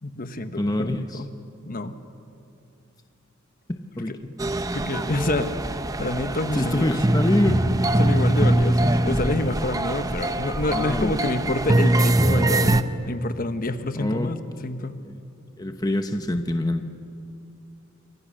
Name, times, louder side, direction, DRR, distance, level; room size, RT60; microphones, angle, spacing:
voice 1, 0.0-1.3 1.7-2.0 4.0-4.2 4.7-5.5 6.0-7.0 8.0-15.0, left 2 dB, 45° left, 10 dB, 1.2 m, -28 dB
voice 2, 0.6-1.2 3.7-4.3 6.5-7.9 10.7-11.1 13.9-14.4 15.0-15.2 15.6-16.8, left 1 dB, 20° left, 6 dB, 0.9 m, -25 dB
sound 1, 4.4-12.8, right 1 dB, 15° right, 0.7 m, -22 dB
28.5 x 24.5 x 6.5 m, 2.7 s
head